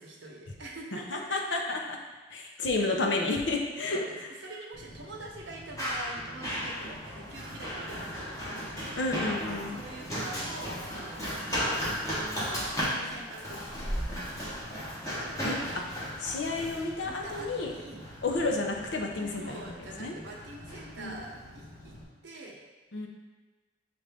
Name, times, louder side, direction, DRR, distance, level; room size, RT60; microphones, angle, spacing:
voice 1, 0.0-1.2 2.5-2.9 3.9-8.7 9.7-11.4 12.0-14.0 17.0-18.0 19.2-22.0 22.2-22.6, right 2 dB, 75° right, -1 dB, 0.8 m, -44 dB
voice 2, 0.9-2.0 2.3-4.3 6.8-6.9 9.0-9.8 15.4-17.7 18.2-20.1 21.0-21.1 22.9-23.1, left 2 dB, 85° left, 1 dB, 0.6 m, -31 dB
Run, 4.7-22.0, equal, 20° left, 1.0 m, -36 dB
6.2 x 2.5 x 3.4 m, 1.3 s
head